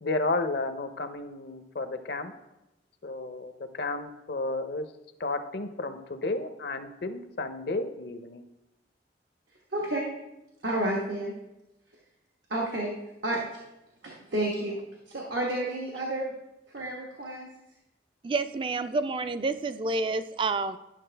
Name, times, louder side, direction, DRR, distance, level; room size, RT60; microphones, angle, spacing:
voice 1, 0.0-2.3 3.0-4.9 5.2-8.4, left 2 dB, 60° left, 9 dB, 0.6 m, -32 dB
voice 2, 9.7-10.1 10.6-11.3 12.5-12.9 13.2-13.4 14.0-14.8 15.1-16.3 16.7-17.5, right 1 dB, 85° right, -2 dB, 1.2 m, -30 dB
voice 3, 18.2-20.8, right 3 dB, 30° right, 11 dB, 0.3 m, -29 dB
10.5 x 6.2 x 3.3 m, 0.94 s
head